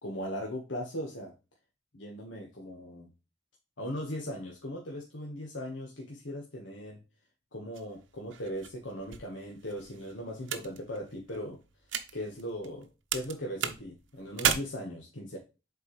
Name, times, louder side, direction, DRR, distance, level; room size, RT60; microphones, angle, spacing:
voice 1, 0.0-1.3 1.9-3.1 3.8-7.0 7.5-11.6 12.1-15.4, equal, 85° left, 0 dB, 1.4 m, -39 dB
sound 1, 7.7-12.8 13.1-14.5, right 8 dB, 85° right, 0.8 m, -35 dB
7.1 x 4.6 x 3.1 m, 0.29 s
head